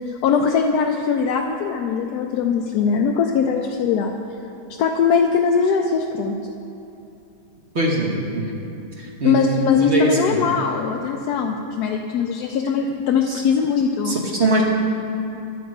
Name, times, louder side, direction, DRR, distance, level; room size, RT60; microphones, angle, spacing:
voice 1, 0.2-4.1 4.8-6.4 9.2-14.1, left 6 dB, 75° left, 2 dB, 1.1 m, -20 dB
voice 2, 7.7-8.5 9.0-9.4 9.8-10.4 13.3-13.4 14.0-14.6, right 1 dB, 45° right, -2 dB, 1.2 m, -22 dB
11.0 x 7.2 x 4.7 m, 2.8 s
omnidirectional pair, 1.8 m